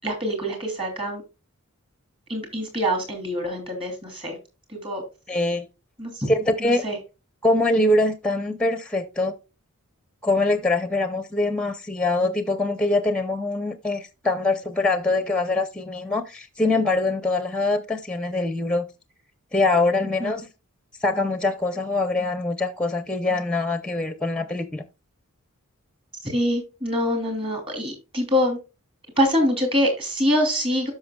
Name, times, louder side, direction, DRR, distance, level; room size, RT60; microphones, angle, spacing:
voice 1, 0.0-1.2 2.3-4.4 4.7-5.0 6.0-6.3 6.6-7.0 20.2-20.4 26.2-28.6 29.2-30.9, equal, 25° right, 2.8 m, -25 dB
voice 2, 5.3-5.7 6.3-6.8 7.4-9.3 10.2-18.9 19.5-20.4 21.0-24.8, left 2 dB, 5° left, 0.6 m, -23 dB
13.0 x 5.7 x 2.2 m
head